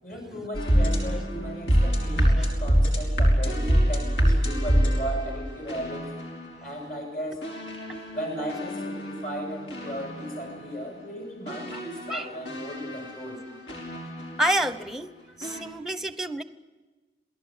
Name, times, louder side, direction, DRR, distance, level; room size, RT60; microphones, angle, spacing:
voice 1, 0.0-6.1 6.6-7.5 7.8-13.5, equal, 50° left, 2 dB, 7.4 m, -36 dB
sound 1, 0.5-6.6 7.4-10.7 11.5-14.6 15.4-15.6, equal, 75° left, 5.7 m, -26 dB
voice 2, 2.2-2.5 11.7-11.8 12.1-12.3 14.4-15.1 15.4-16.4, right 1 dB, ahead, 12 dB, 0.8 m, -29 dB
27.5 x 18.0 x 9.1 m, 1.3 s
head